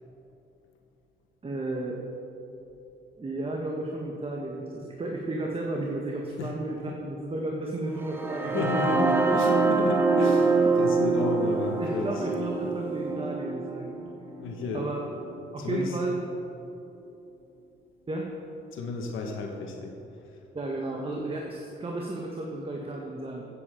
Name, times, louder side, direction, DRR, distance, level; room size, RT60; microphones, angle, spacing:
voice 1, 1.4-2.0 3.2-8.8 11.8-13.9 14.7-15.0 15.5-16.1 18.1-18.3 20.5-23.4, right 2 dB, 30° right, -1 dB, 1.5 m, -33 dB
sound 1, 8.0-15.9, right 3 dB, 10° right, 1.3 m, -26 dB
voice 2, 8.5-12.2 14.4-14.9 15.6-16.0 18.7-20.0, left 3 dB, 85° left, 2 dB, 1.4 m, -32 dB
15.0 x 8.4 x 5.0 m, 3.0 s
cardioid pair, 90°, 20 cm